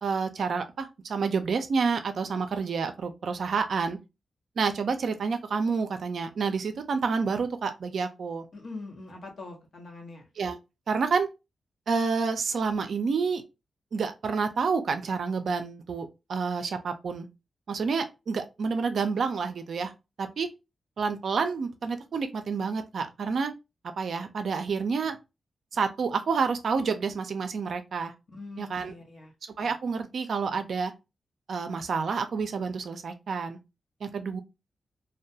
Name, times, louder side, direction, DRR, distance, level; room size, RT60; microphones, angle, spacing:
voice 1, 0.0-4.0 4.6-8.4 10.4-10.6 10.9-11.3 11.9-13.4 13.9-17.3 17.7-19.9 20.2-20.5 21.0-23.5 23.8-25.2 25.7-28.1 28.6-28.9 29.6-30.9 31.5-33.6 34.0-34.4, right 5 dB, 75° right, 0.4 m, -29 dB
voice 2, 8.5-10.3 28.3-29.3, left 3 dB, 70° left, 0.9 m, -43 dB
2.2 x 2.2 x 2.7 m
cardioid pair, 55°, 0 cm